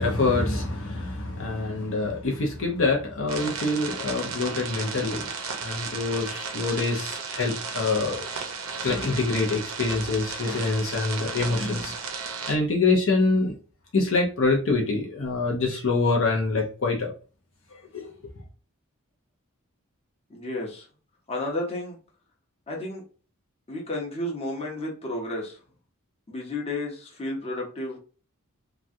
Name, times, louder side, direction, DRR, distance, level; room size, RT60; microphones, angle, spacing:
voice 1, 0.0-5.3 5.6-8.3 8.8-11.9 12.5-13.6 13.9-17.1 17.7-18.1, left 3 dB, 60° left, 0.7 m, -25 dB
sound 1, 3.3-12.6, right 5 dB, 75° right, 0.7 m, -34 dB
voice 2, 20.3-20.9 21.3-22.0 22.7-23.0 23.7-25.6 26.3-28.0, left 1 dB, 30° left, 0.9 m, -32 dB
3.1 x 2.3 x 2.6 m
head